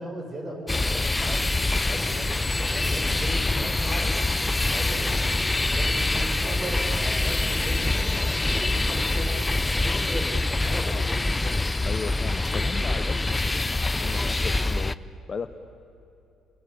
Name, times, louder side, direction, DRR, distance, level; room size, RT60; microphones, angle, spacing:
voice 1, 0.0-2.3 2.7-5.2 5.7-8.1 8.4-11.3, right 1 dB, 30° right, 2 dB, 7.4 m, -38 dB
sound 1, 0.7-14.9, left 2 dB, 20° left, 0.7 m, -25 dB
voice 2, 11.8-15.5, left 5 dB, 40° left, 10 dB, 1.0 m, -36 dB
29.0 x 23.0 x 8.6 m, 2.8 s
figure-of-eight pair, 45°, 0 cm